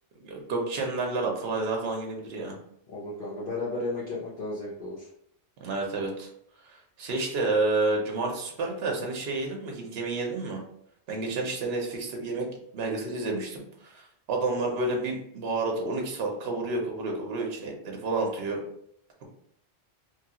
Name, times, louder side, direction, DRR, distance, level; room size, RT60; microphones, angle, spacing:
voice 1, 0.2-2.6 5.6-6.3 6.6-10.6 11.1-12.5 12.7-18.6 19.2-19.3, right 3 dB, 65° right, 0 dB, 0.9 m, -30 dB
voice 2, 2.9-5.1, left 2 dB, 55° left, -7 dB, 0.9 m, -34 dB
3.2 x 2.3 x 2.8 m, 0.71 s
omnidirectional pair, 1.2 m